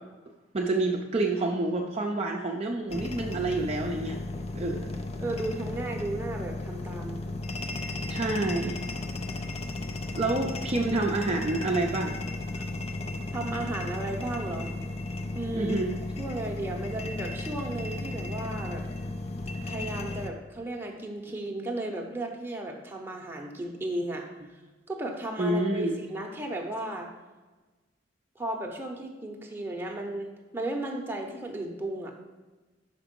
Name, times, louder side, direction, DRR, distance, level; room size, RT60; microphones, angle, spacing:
voice 1, 0.5-4.2 4.5-4.9 8.1-8.8 10.2-12.2 15.4-16.0 25.4-26.0, right 2 dB, 35° right, 0 dB, 0.5 m, -28 dB
sound 1, 2.9-20.3, left 2 dB, 35° left, 0.5 m, -35 dB
voice 2, 5.2-7.2 12.5-12.7 13.3-14.7 15.3-15.8 16.2-18.8 19.6-24.2 24.9-27.1 28.4-32.1, right 1 dB, 10° right, 1 dB, 0.8 m, -34 dB
5.9 x 4.8 x 5.3 m, 1.2 s
head